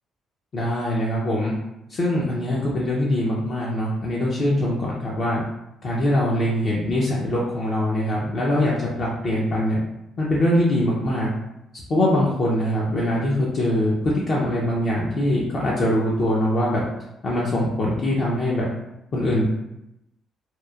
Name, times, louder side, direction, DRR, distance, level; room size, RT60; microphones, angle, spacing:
voice 1, 0.5-1.5 1.9-5.4 5.8-9.8 10.2-11.3 11.9-16.8 17.2-18.7 19.1-19.4, left 1 dB, 40° left, -5 dB, 0.5 m, -22 dB
2.8 x 2.1 x 2.3 m, 0.86 s
cardioid pair, 140°, 0 cm